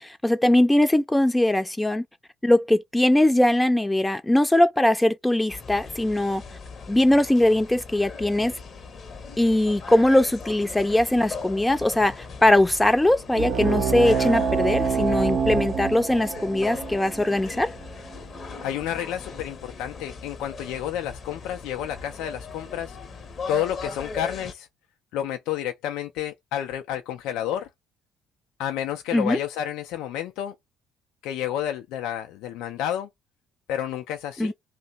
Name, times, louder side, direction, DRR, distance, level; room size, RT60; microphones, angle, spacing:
voice 1, 0.0-2.0 2.4-6.4 6.9-8.5 9.4-17.7 29.1-29.4 34.4-34.5, left 1 dB, 10° left, 0.6 m, -21 dB
sound 1, 5.5-24.5, left 4 dB, 45° left, 0.8 m, -39 dB
sound 2, 13.3-18.4, right 5 dB, 60° right, 0.7 m, -26 dB
voice 2, 18.6-23.0 23.5-24.7 25.1-27.7 28.6-30.5 31.2-33.1 33.7-34.5, left 11 dB, 65° left, 0.4 m, -30 dB
2.8 x 2.0 x 3.9 m
figure-of-eight pair, 50°, 0 cm